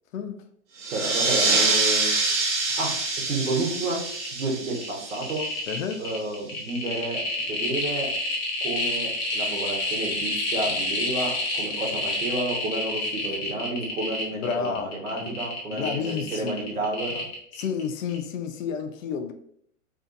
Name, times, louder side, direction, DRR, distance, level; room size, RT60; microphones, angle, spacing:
voice 1, 0.1-0.4 5.7-6.0 14.3-14.9 15.2-15.4 15.7-16.6 17.5-19.3, left 6 dB, 70° left, 0.5 m, -30 dB
sound 1, 0.8-6.0, right 3 dB, 60° right, 0.8 m, -26 dB
voice 2, 0.9-2.1 2.8-2.9 3.3-4.0 4.3-5.4 6.0-7.2 7.5-8.1 8.6-17.3, right 2 dB, 80° right, 1.1 m, -30 dB
sound 2, 3.7-3.8 4.0-4.4 4.7-17.8 18.1-18.2, left 2 dB, 15° left, 0.3 m, -29 dB
2.6 x 2.4 x 2.5 m
hypercardioid pair, 115°, 41 cm